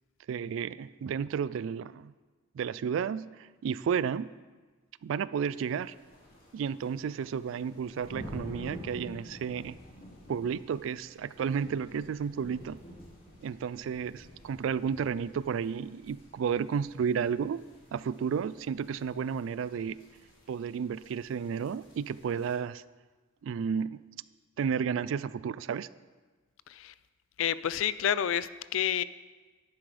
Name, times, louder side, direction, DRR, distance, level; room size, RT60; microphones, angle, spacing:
voice 1, 0.3-2.1 2.5-4.3 5.0-5.9 6.5-9.8 10.3-12.8 13.4-17.6 17.9-20.0 20.5-22.8 23.4-24.0 24.6-25.9, right 7 dB, 70° right, 18 dB, 0.3 m, -32 dB
sound 1, 5.5-22.6, equal, 50° left, 2.5 m, -50 dB
voice 2, 27.4-29.0, left 9 dB, 75° left, 16 dB, 0.4 m, -29 dB
11.5 x 9.7 x 3.3 m, 1.3 s
head